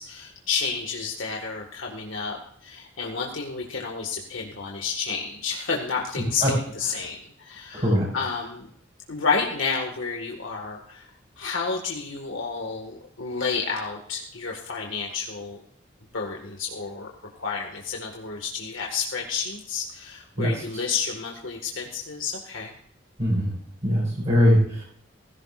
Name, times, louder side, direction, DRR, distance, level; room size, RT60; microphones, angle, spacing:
voice 1, 0.0-8.7 9.1-15.6 16.1-17.1 17.4-22.7, left 5 dB, 85° left, 0 dB, 1.7 m, -30 dB
voice 2, 7.7-8.1 20.4-20.6 23.2-23.5 23.8-24.8, equal, 35° right, -5 dB, 5.5 m, -21 dB
17.5 x 15.5 x 2.5 m, 0.63 s
head